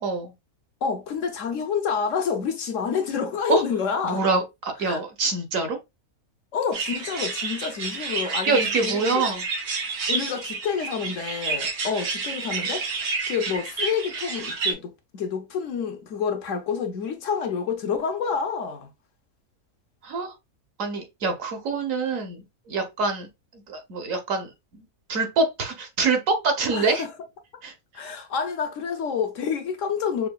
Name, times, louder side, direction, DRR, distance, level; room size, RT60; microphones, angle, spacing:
voice 1, 0.0-0.3 3.5-3.6 4.0-5.8 8.5-9.4 20.0-20.3 20.8-24.8 25.1-27.0 27.6-28.1, right 3 dB, 65° right, 1.2 m, -26 dB
voice 2, 0.8-4.2 4.8-5.0 6.5-9.3 10.1-12.9 13.3-18.9 26.7-27.1 27.9-30.3, left 6 dB, 65° left, 0.9 m, -28 dB
sound 1, 6.7-14.7, right 4 dB, 90° right, 1.5 m, -30 dB
5.6 x 2.4 x 2.2 m
omnidirectional pair, 1.6 m